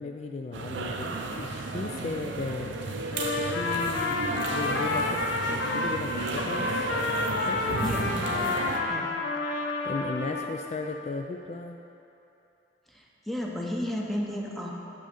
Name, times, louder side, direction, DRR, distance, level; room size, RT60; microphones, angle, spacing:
voice 1, 0.0-2.8 3.3-6.9 7.4-8.6 9.8-11.8, left 3 dB, 35° left, 3 dB, 0.3 m, -36 dB
sound 1, 0.5-8.8, right 3 dB, 65° right, 0.6 m, -33 dB
Trumpet, 3.1-6.0 6.4-10.5, left 3 dB, 70° left, 0.6 m, -30 dB
voice 2, 7.8-8.3 8.9-9.2 12.9-14.7, left 1 dB, ahead, -2 dB, 0.7 m, -33 dB
6.2 x 5.4 x 6.9 m, 2.9 s
head